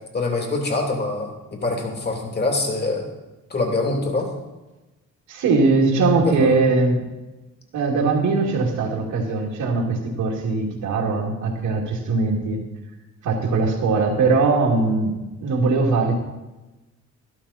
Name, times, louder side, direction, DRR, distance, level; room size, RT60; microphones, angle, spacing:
voice 1, 0.1-3.1 3.5-4.3 6.3-6.6, left 2 dB, 35° left, 2 dB, 3.0 m, -24 dB
voice 2, 5.3-7.0 7.7-12.6 13.2-15.1 15.4-16.1, right 3 dB, 80° right, -1 dB, 2.5 m, -20 dB
12.5 x 12.0 x 4.2 m, 1.1 s
cardioid pair, 90°, 30 cm